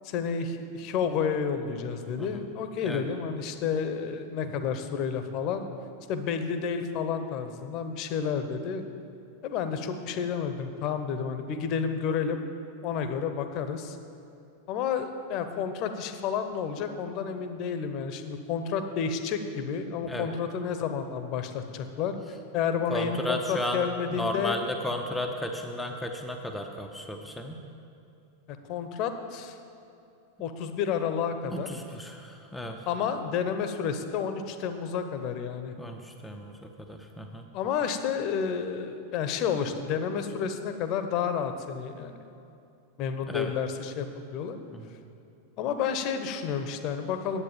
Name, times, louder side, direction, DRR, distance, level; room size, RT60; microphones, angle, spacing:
voice 1, 0.0-5.6 6.1-8.8 9.4-12.4 12.8-14.0 14.7-22.1 22.5-24.6 28.5-29.6 30.4-31.7 32.9-35.7 37.5-42.1 43.0-44.6 45.6-47.4, left 7 dB, 40° left, 8 dB, 0.9 m, -30 dB
voice 2, 22.9-27.6 31.5-32.9 35.8-37.4 43.3-43.5 44.7-44.9, left 1 dB, 5° left, 3 dB, 0.7 m, -34 dB
10.5 x 8.1 x 7.2 m, 2.6 s
figure-of-eight pair, 90°, 0 cm